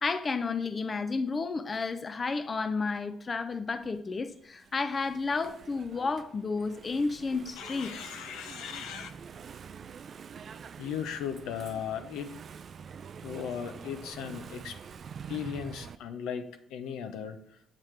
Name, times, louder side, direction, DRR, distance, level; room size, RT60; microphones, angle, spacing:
voice 1, 0.0-7.9, left 4 dB, 35° left, 0.5 m, -31 dB
Engine / Mechanisms, 3.8-16.0, right 6 dB, 50° right, 0.3 m, -46 dB
voice 2, 7.6-9.1 10.8-12.4 13.2-14.8 15.3-17.4, left 8 dB, 90° left, 0.6 m, -37 dB
7.5 x 7.3 x 3.3 m
cardioid pair, 90°, 0 cm